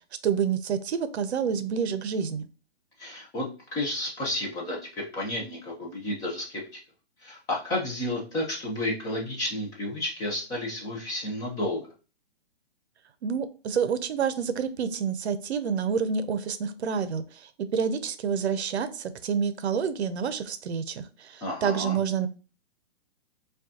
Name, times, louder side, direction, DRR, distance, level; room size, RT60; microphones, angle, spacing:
voice 1, 0.2-2.4 13.2-17.2 17.7-22.3, right 7 dB, 75° right, 12 dB, 0.6 m, -28 dB
voice 2, 3.0-6.6 7.2-11.8 21.4-22.0, left 1 dB, 10° left, -3 dB, 0.5 m, -31 dB
5.0 x 2.3 x 2.7 m, 0.34 s
hypercardioid pair, 145°, 33 cm